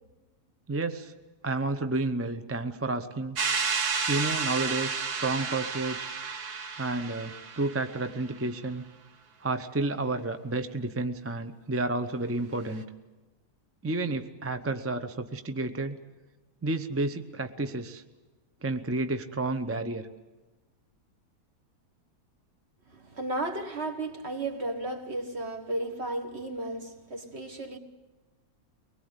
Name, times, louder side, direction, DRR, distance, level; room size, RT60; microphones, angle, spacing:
voice 1, 0.7-1.1 1.4-3.4 4.1-6.1 6.8-8.8 9.4-12.8 13.8-16.0 16.6-18.0 18.6-20.0, right 2 dB, 15° right, 0.5 m, -31 dB
sound 1, 3.4-8.2, right 5 dB, 80° right, 1.8 m, -31 dB
voice 2, 22.9-27.8, right 2 dB, 45° right, 2.0 m, -34 dB
23.5 x 20.0 x 8.2 m
omnidirectional pair, 1.6 m